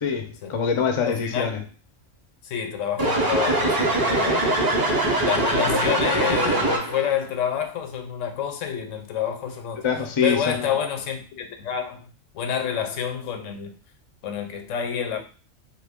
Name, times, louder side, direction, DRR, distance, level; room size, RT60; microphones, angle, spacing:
voice 1, 0.0-1.6 9.8-10.7, left 6 dB, 45° left, 0.4 m, -24 dB
voice 2, 1.1-1.6 2.4-4.5 5.2-9.8 10.2-13.8 14.2-15.2, left 8 dB, 90° left, 1.0 m, -28 dB
sound 1, 3.0-7.1, right 1 dB, 25° right, 0.5 m, -22 dB
3.1 x 2.2 x 3.5 m
omnidirectional pair, 1.3 m